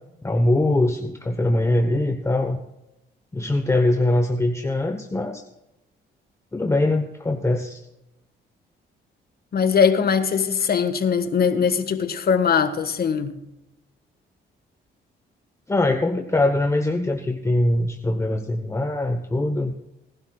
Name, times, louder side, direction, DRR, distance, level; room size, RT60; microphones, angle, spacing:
voice 1, 0.2-2.6 3.3-5.4 6.5-7.8 15.7-19.7, left 1 dB, 15° left, 1.0 m, -22 dB
voice 2, 9.5-13.4, left 6 dB, 50° left, 1.5 m, -21 dB
19.5 x 11.5 x 2.4 m
cardioid pair, 90°, 20 cm